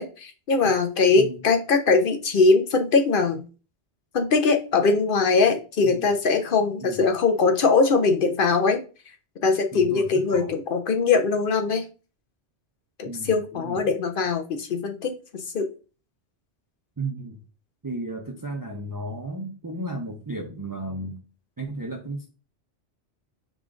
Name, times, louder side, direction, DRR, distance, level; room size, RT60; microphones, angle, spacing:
voice 1, 0.0-3.4 4.1-8.8 9.4-11.9 13.0-15.7, left 4 dB, 60° left, 6 dB, 0.7 m, -21 dB
voice 2, 9.7-10.5 13.1-13.9 17.0-17.4 17.8-21.2 21.6-22.3, right 2 dB, 25° right, 1 dB, 0.5 m, -34 dB
4.9 x 2.4 x 3.7 m, 0.35 s
omnidirectional pair, 1.2 m